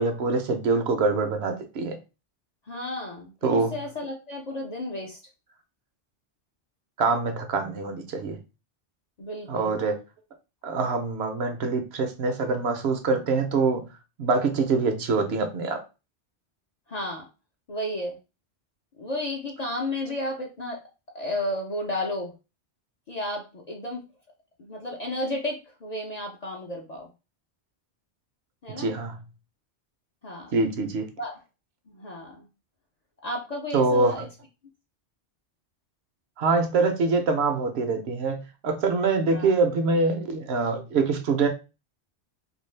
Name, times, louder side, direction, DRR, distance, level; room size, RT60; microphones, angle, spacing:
voice 1, 0.0-2.0 3.4-3.7 7.0-8.4 9.5-9.9 10.6-13.8 14.2-15.8 28.8-29.2 30.5-31.1 33.7-34.1 36.4-41.5, right 4 dB, 70° right, 0.8 m, -24 dB
voice 2, 2.7-5.2 9.2-9.8 16.9-17.3 17.7-18.2 19.0-20.8 21.1-22.3 23.1-24.0 24.6-27.1 28.6-28.9 30.2-30.6 31.2-31.4 31.9-32.5 33.2-34.3 39.3-39.6, left 1 dB, 50° left, 0.5 m, -32 dB
2.6 x 2.3 x 3.1 m
omnidirectional pair, 1.2 m